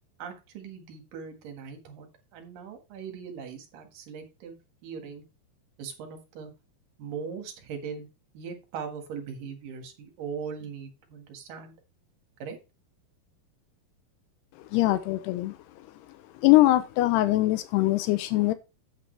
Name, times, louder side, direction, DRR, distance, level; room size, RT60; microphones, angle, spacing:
voice 1, 0.2-5.2 5.8-6.5 7.0-8.1 8.3-11.7 12.4-12.6, right 6 dB, 60° right, 3.0 m, -40 dB
voice 2, 14.7-15.6 16.4-18.5, left 17 dB, 85° left, 2.7 m, -22 dB
8.7 x 8.5 x 3.3 m
omnidirectional pair, 4.7 m